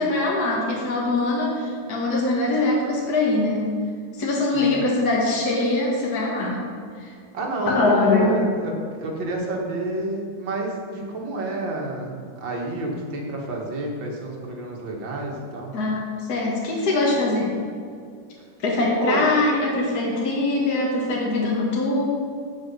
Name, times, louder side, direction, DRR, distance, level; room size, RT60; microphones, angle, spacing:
voice 1, 0.0-3.7 4.1-6.6 7.0-7.1 7.7-8.6 15.7-17.6 18.6-22.0, left 2 dB, 55° left, -3 dB, 1.9 m, -22 dB
voice 2, 7.3-15.7 19.0-19.4, right 2 dB, 85° right, -1 dB, 2.4 m, -29 dB
8.7 x 7.7 x 5.4 m, 2.3 s
omnidirectional pair, 2.0 m